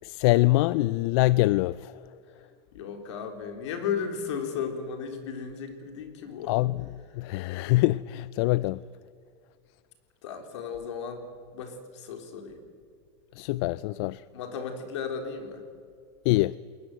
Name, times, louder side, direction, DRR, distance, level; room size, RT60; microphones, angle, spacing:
voice 1, 0.0-2.0 6.5-6.8 7.1-8.8 13.3-14.2 16.2-16.6, left 19 dB, 65° left, 0.5 m, -24 dB
voice 2, 2.7-6.5 10.2-11.2 11.5-12.6 14.3-15.6, left 6 dB, 85° left, 3.8 m, -35 dB
21.5 x 19.5 x 8.0 m
supercardioid pair, 125°, 15 cm